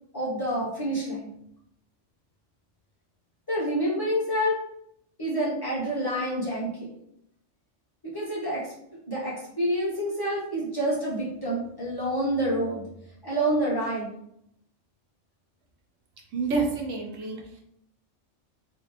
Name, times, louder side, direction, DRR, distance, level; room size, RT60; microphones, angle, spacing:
voice 1, 0.1-1.3 3.5-4.5 5.2-6.9 8.0-8.7 9.1-12.8 13.2-14.1, right 1 dB, 20° left, -9 dB, 1.5 m, -28 dB
voice 2, 16.3-17.6, right 4 dB, 90° right, 1 dB, 1.2 m, -28 dB
3.3 x 3.0 x 3.2 m, 0.75 s
omnidirectional pair, 1.3 m